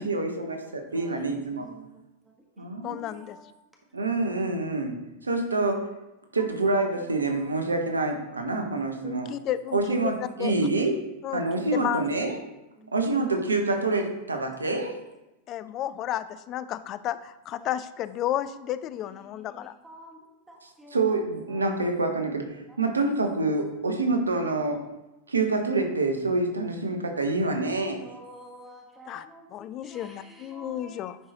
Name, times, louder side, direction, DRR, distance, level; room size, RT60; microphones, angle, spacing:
voice 1, 0.0-1.7 2.6-3.2 3.9-5.0 5.2-5.8 6.3-9.3 9.7-11.0 11.3-12.4 12.9-15.0 20.6-22.5 22.8-24.8 25.3-28.0, right 3 dB, 75° right, 4 dB, 1.0 m, -27 dB
voice 2, 0.6-3.4 6.4-7.5 11.5-11.7 12.8-12.9 13.3-13.5 14.6-14.9 17.6-17.7 19.0-21.2 21.5-21.9 22.7-23.1 28.0-31.0, equal, 10° right, 0 dB, 1.3 m, -50 dB
voice 3, 2.8-3.4 9.0-10.1 10.4-10.5 11.2-11.4 11.7-12.1 15.5-19.7 29.1-31.2, left 12 dB, 35° left, 14 dB, 0.4 m, -32 dB
10.0 x 4.7 x 2.9 m, 0.98 s
figure-of-eight pair, 90°, 0 cm